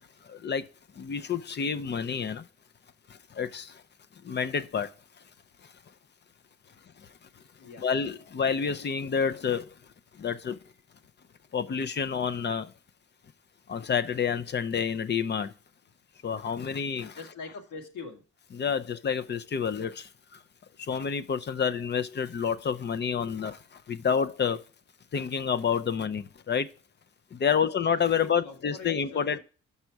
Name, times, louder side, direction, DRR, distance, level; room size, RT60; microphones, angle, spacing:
voice 1, 0.2-0.6 0.9-2.5 3.1-3.8 4.2-4.9 7.8-9.7 10.1-10.6 11.5-12.7 13.7-15.5 16.2-17.2 18.5-20.4 20.8-24.6 25.1-26.7 27.3-29.4, left 7 dB, 35° left, 0.5 m, -29 dB
voice 2, 17.2-18.2 27.3-27.7 28.1-29.4, left 4 dB, 70° left, 1.7 m, -44 dB
6.0 x 5.5 x 4.5 m
cardioid pair, 90°, 30 cm